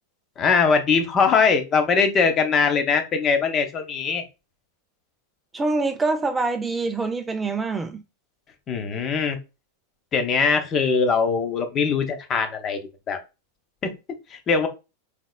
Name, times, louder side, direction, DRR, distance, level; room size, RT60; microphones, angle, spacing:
voice 1, 0.4-4.2 8.7-9.4 10.1-12.8 13.1-13.2 13.8-13.9 14.3-14.7, left 5 dB, 30° left, 1.0 m, -21 dB
voice 2, 5.5-8.0, right 3 dB, 15° right, 0.5 m, -25 dB
5.1 x 4.0 x 2.2 m
figure-of-eight pair, 90°, 0 cm